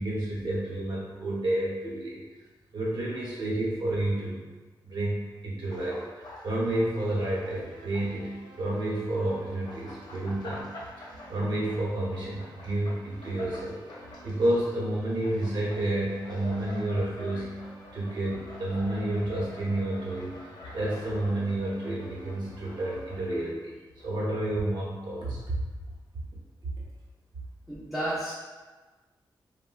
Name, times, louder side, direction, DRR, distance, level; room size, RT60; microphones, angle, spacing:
voice 1, 0.0-2.2 2.7-4.4 4.8-8.3 8.6-10.6 11.0-17.6 17.9-20.3 20.7-23.8 24.0-25.6, right 1 dB, 65° right, -5 dB, 0.8 m, -30 dB
sound 1, 5.7-8.2 8.5-23.5 23.9-24.1, left 2 dB, 60° left, 0.5 m, -47 dB
sound 2, 7.0-23.2, right 2 dB, 90° right, 0.5 m, -52 dB
voice 2, 27.7-28.3, right 1 dB, 5° right, -9 dB, 0.5 m, -31 dB
3.6 x 2.1 x 2.3 m, 1.3 s
wide cardioid pair, 160°, 8 cm